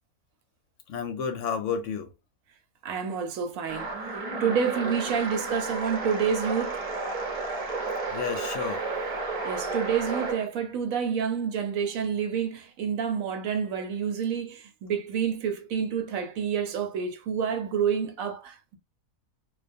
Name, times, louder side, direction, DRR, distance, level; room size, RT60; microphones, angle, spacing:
voice 1, 0.9-2.1 8.1-8.8, left 6 dB, 70° left, 0.8 m, -31 dB
voice 2, 2.8-6.8 9.4-18.8, right 7 dB, 75° right, 1.0 m, -29 dB
sound 1, 3.7-10.4, right 3 dB, 40° right, 0.6 m, -32 dB
2.3 x 2.2 x 2.5 m
omnidirectional pair, 1.5 m